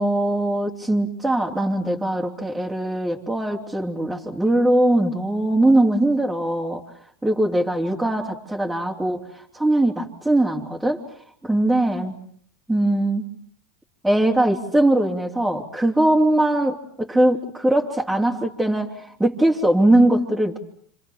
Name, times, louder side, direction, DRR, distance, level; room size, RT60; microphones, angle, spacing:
voice 1, 0.0-6.9 7.2-11.0 11.4-12.1 12.7-13.3 14.0-20.6, right 1 dB, 5° right, -4 dB, 3.5 m, -21 dB
29.5 x 26.0 x 7.3 m, 0.62 s
hypercardioid pair, 95°, 0 cm